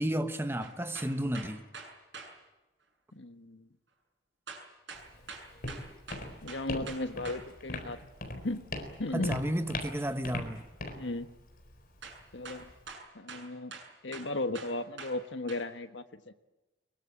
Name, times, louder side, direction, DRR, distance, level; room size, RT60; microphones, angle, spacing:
voice 1, 0.0-1.6 9.1-10.7, right 1 dB, 10° right, 1.2 m, -32 dB
sound 1, 0.6-2.3 4.5-7.4 12.0-12.2 12.4-15.2 15.5-15.6, right 4 dB, 70° right, 7.2 m, -45 dB
voice 2, 3.1-3.7 6.4-8.6 9.0-9.4 10.9-11.3 12.3-12.7 13.1-13.7 14.0-16.2, left 2 dB, 75° left, 1.4 m, -36 dB
Walk footsteps, 4.9-12.9, left 2 dB, 50° left, 4.3 m, -41 dB
23.5 x 23.0 x 8.8 m
head